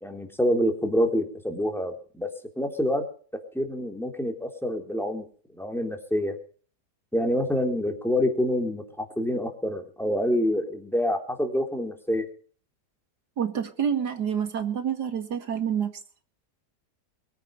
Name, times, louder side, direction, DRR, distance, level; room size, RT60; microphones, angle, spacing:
voice 1, 0.0-2.3 2.6-3.0 3.5-5.2 5.6-6.4 7.1-12.3, equal, ahead, 3.5 m, -26 dB
voice 2, 13.4-15.9, right 8 dB, 75° right, 2.6 m, -28 dB
23.0 x 9.3 x 6.6 m
omnidirectional pair, 1.8 m